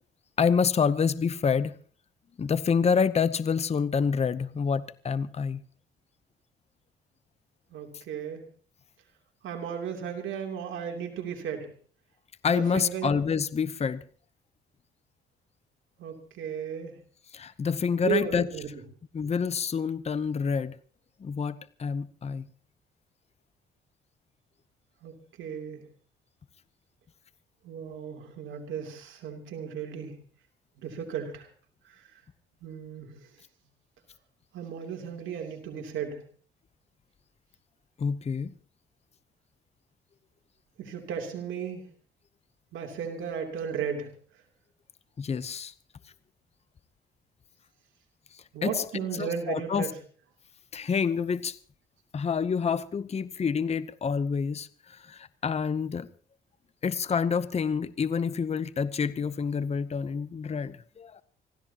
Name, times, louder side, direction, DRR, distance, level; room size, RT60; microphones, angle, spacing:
voice 1, 0.4-1.8 2.4-5.6 12.4-14.0 17.3-18.5 19.1-20.8 21.2-22.5 38.0-38.5 45.2-45.7 48.3-49.9 50.7-51.6 52.1-56.1 56.8-61.2, left 6 dB, 30° left, 0.7 m, -28 dB
voice 2, 7.7-8.4 9.4-11.7 12.5-13.1 16.0-17.0 18.0-18.7 25.0-25.9 27.6-30.1 30.8-31.5 32.6-33.2 34.5-36.2 40.8-41.8 42.7-44.1 48.5-49.9, right 7 dB, 80° right, 3.0 m, -35 dB
25.5 x 15.5 x 2.9 m
cardioid pair, 90°, 20 cm